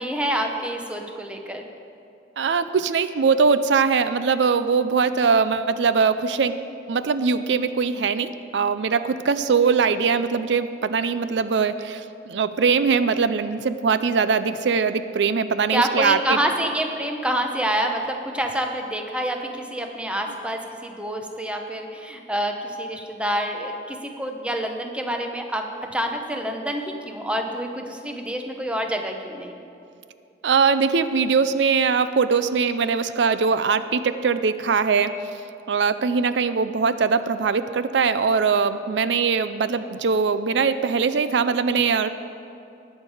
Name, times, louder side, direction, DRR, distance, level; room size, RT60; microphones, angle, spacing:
voice 1, 0.0-1.6 15.7-29.6, right 1 dB, 5° right, 3 dB, 0.9 m, -27 dB
voice 2, 2.4-6.6 6.9-16.4 30.4-35.1 35.7-42.1, right 5 dB, 85° right, 12 dB, 0.5 m, -21 dB
19.0 x 7.3 x 4.8 m, 2.6 s
head